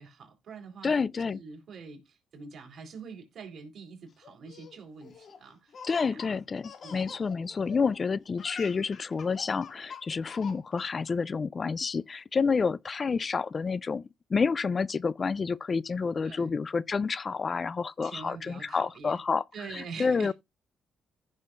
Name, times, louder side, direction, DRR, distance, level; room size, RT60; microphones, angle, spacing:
voice 1, 0.0-0.9 1.3-6.4 6.8-7.1 16.2-16.6 18.0-19.2 19.5-20.3, right 5 dB, 55° right, 4.1 m, -45 dB
voice 2, 0.8-1.4 5.8-19.4 19.7-20.3, left 5 dB, 35° left, 0.4 m, -29 dB
Laughter, 4.2-8.0 8.3-11.1, left 6 dB, 55° left, 2.1 m, -45 dB
15.0 x 6.3 x 2.5 m
cardioid pair, 90°, 0 cm